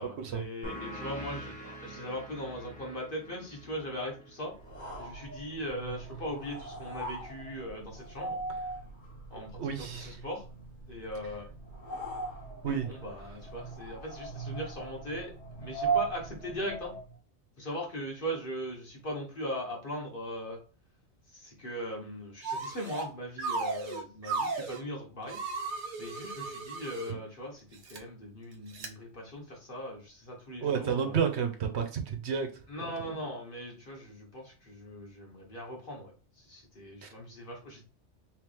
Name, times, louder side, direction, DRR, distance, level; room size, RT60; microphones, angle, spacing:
voice 1, 0.0-4.5 5.0-8.4 9.3-10.4 10.9-11.5 12.6-15.3 15.6-16.9 17.6-20.6 21.3-25.4 26.0-31.2 32.7-37.9, equal, 50° left, 1.5 m, -39 dB
sound 1, 0.6-5.8, equal, 5° left, 1.0 m, -45 dB
sound 2, 4.6-17.1, right 4 dB, 75° left, 1.3 m, -39 dB
voice 2, 9.3-10.1 12.6-12.9 30.6-32.5 37.0-37.1, right 7 dB, 70° right, 1.0 m, -31 dB
sound 3, 22.4-23.1 23.4-24.8 25.3-27.1 27.7-28.0 28.7-28.9, right 4 dB, 50° right, 0.8 m, -35 dB
3.3 x 3.2 x 3.3 m
omnidirectional pair, 1.2 m